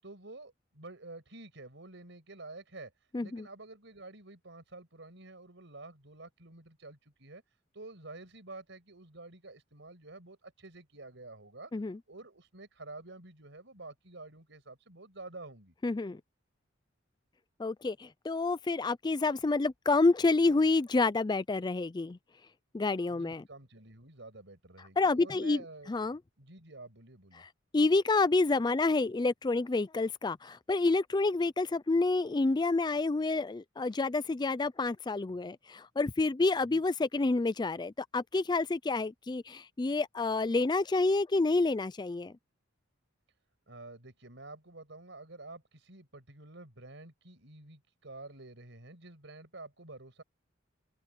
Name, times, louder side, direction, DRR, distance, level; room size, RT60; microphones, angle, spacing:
voice 1, 0.0-2.9 3.2-7.4 7.7-11.7 12.1-15.7 23.1-25.9 26.4-27.4 36.6-36.8 43.7-50.2, right 2 dB, 65° right, 6.3 m, -49 dB
voice 2, 3.1-3.4 11.7-12.0 15.8-16.2 17.6-22.2 22.7-23.4 25.0-25.6 25.9-26.2 27.7-42.3, left 3 dB, 20° left, 0.4 m, -28 dB
open air
head